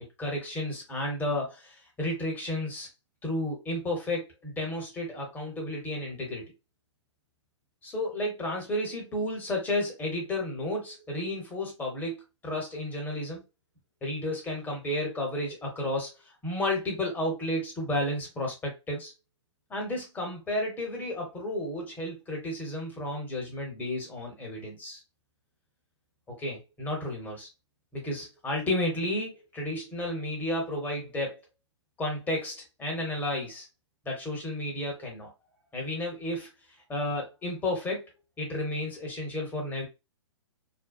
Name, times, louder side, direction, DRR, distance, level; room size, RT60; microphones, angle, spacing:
voice 1, 0.2-2.9 3.2-6.4 7.8-13.4 14.0-16.1 16.4-19.1 19.7-25.0 26.3-27.5 27.9-31.4 32.0-33.7 34.0-35.3 35.7-36.5 36.9-38.1 38.4-39.9, left 1 dB, 10° left, 1.0 m, -32 dB
2.6 x 2.1 x 2.3 m
hypercardioid pair, 140°, 16 cm